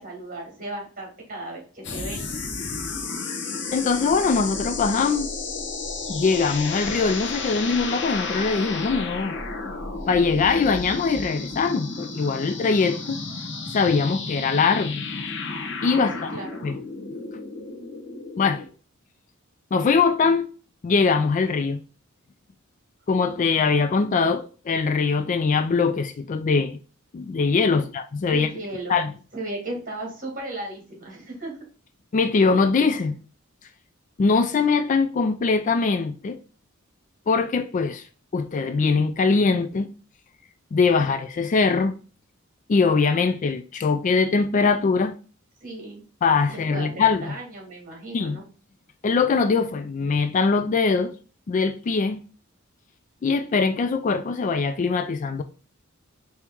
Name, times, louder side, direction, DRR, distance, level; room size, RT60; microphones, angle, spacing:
voice 1, 0.0-2.3 16.1-16.6 27.7-27.8 28.3-28.9 29.3-31.5 45.6-46.0 46.5-48.4, right 2 dB, 40° right, 1.8 m, -35 dB
sound 1, 1.8-18.7, left 3 dB, 60° left, 0.8 m, -32 dB
voice 2, 3.7-5.3 6.1-9.4 10.1-13.2 13.7-15.0 15.8-16.3 16.6-16.8 18.4-18.6 19.7-20.5 20.8-21.8 23.1-26.8 27.1-28.5 28.9-29.1 32.1-33.2 34.2-36.4 37.3-38.0 38.3-39.9 40.7-41.9 42.7-45.1 46.2-47.3 48.1-48.4 49.0-51.1 51.5-52.2 53.2-55.4, left 4 dB, 35° left, 0.3 m, -22 dB
4.5 x 2.8 x 3.5 m
head